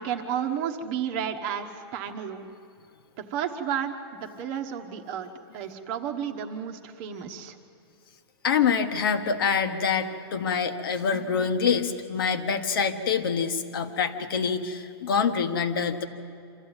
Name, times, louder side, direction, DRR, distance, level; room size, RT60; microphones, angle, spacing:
voice 1, 0.0-2.5 3.2-7.6, right 8 dB, 30° right, 5 dB, 1.2 m, -32 dB
voice 2, 8.4-16.0, left 6 dB, 60° left, 7 dB, 1.4 m, -26 dB
26.0 x 13.5 x 8.9 m, 2.4 s
hypercardioid pair, 170°, 13 cm